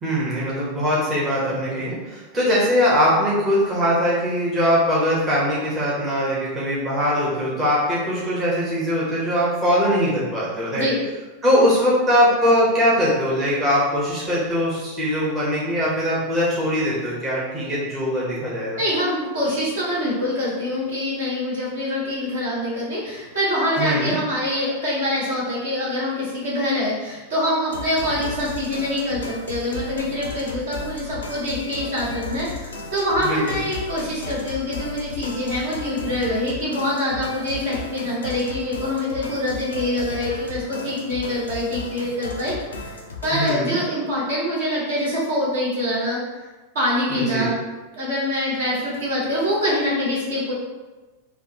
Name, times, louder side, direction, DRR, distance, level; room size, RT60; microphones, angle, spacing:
voice 1, 0.0-10.9 11.4-18.8 23.8-24.2 33.2-33.4 43.3-43.8 47.1-47.5, equal, 20° right, -7 dB, 0.9 m, -21 dB
voice 2, 18.8-43.0 43.2-46.2 46.7-47.5 47.9-50.5, left 1 dB, 60° right, -6 dB, 1.2 m, -25 dB
sound 1, 27.7-43.5, left 3 dB, 70° left, 0.4 m, -35 dB
3.4 x 2.2 x 2.8 m, 1.2 s
figure-of-eight pair, 90°, 0 cm